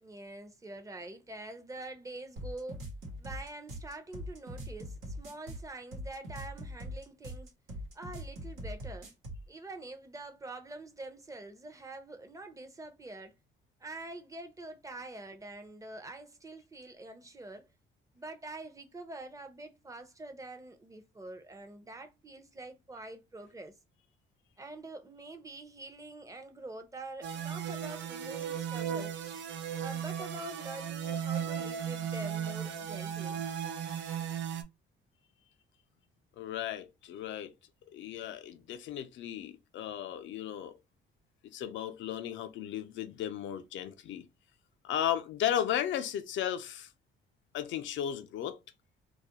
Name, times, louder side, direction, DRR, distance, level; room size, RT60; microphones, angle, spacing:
voice 1, 0.0-2.9 3.2-7.5 7.9-9.1 9.5-13.3 13.8-17.7 18.1-23.7 24.6-29.2 29.8-33.4, right 2 dB, 15° right, 0.6 m, -45 dB
sound 1, 2.4-9.5, equal, 90° right, 1.0 m, -42 dB
sound 2, 27.2-34.6, right 8 dB, 70° right, 0.4 m, -36 dB
voice 2, 36.4-37.5 37.9-40.8 41.5-44.3 44.8-46.9 47.5-48.6, left 10 dB, 70° left, 0.5 m, -35 dB
2.3 x 2.1 x 2.7 m
cardioid pair, 90°, 20 cm